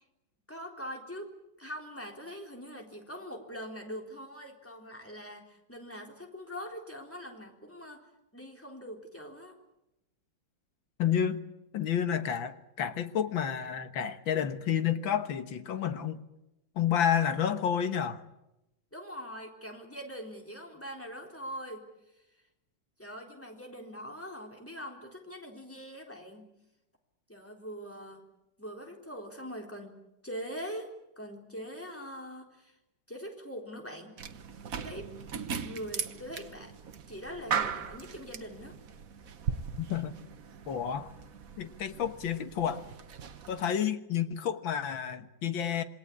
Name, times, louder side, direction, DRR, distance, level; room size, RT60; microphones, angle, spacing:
voice 1, 0.5-8.1 8.3-9.6 18.9-21.9 22.1-22.3 23.0-26.5 27.3-28.2 28.6-30.0 30.2-32.8 33.1-34.2 34.8-35.1 35.6-36.7 37.1-38.8, equal, 5° left, 3.9 m, -43 dB
voice 2, 11.0-11.4 11.7-16.2 16.8-18.2 39.8-40.2 40.7-41.1 41.6-42.8 43.5-45.8, left 8 dB, 80° left, 2.1 m, -30 dB
sound 1, 34.2-43.7, right 6 dB, 50° right, 1.5 m, -38 dB
27.5 x 20.5 x 8.6 m
omnidirectional pair, 2.1 m